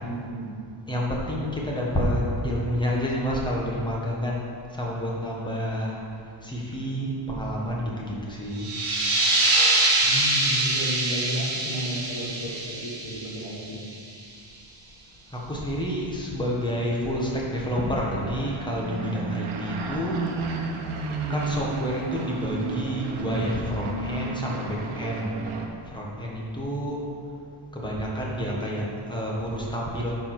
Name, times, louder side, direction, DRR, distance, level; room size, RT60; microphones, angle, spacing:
voice 1, 0.0-0.6 10.0-13.9, equal, 75° left, -5 dB, 1.6 m, -33 dB
voice 2, 0.9-4.5 4.7-6.0 6.4-8.7 15.3-20.2 21.3-25.4 25.9-27.0 27.7-30.1, equal, 10° left, -3 dB, 1.3 m, -29 dB
sound 1, 8.5-13.9, right 2 dB, 45° right, 1.7 m, -24 dB
sound 2, 17.4-25.7, right 3 dB, 85° right, 1.1 m, -32 dB
9.8 x 4.8 x 6.0 m, 2.4 s
wide cardioid pair, 175°, 49 cm